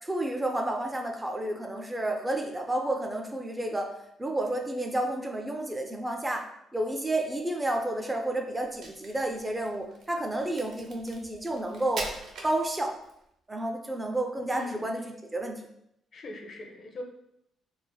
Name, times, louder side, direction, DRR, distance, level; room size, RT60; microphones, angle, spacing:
voice 1, 0.0-3.9 4.2-6.5 6.7-12.1 12.4-12.9 13.5-15.6, right 1 dB, 15° right, 2 dB, 0.3 m, -31 dB
Crack, 8.6-13.2, right 3 dB, 75° right, 0.5 m, -42 dB
voice 2, 14.5-14.8 16.1-17.0, left 2 dB, 50° left, 2 dB, 0.5 m, -40 dB
3.1 x 2.0 x 2.2 m, 0.78 s
cardioid pair, 90°, 0 cm